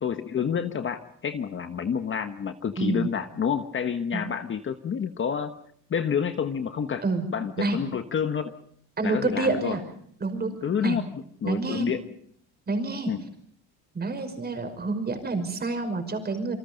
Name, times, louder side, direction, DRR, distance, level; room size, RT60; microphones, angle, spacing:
voice 1, 0.0-5.5 5.9-7.0 7.3-8.5 9.0-9.8 10.6-12.0 13.1-13.2, left 7 dB, 30° left, 8 dB, 1.4 m, -29 dB
voice 2, 2.8-3.1 4.1-4.2 7.0-7.2 7.6-7.8 9.0-9.8 10.2-11.0 11.4-11.9 12.7-13.1 13.9-16.5, right 3 dB, 25° right, 7 dB, 5.7 m, -28 dB
28.5 x 25.0 x 5.3 m, 0.65 s
cardioid pair, 150°, 40 cm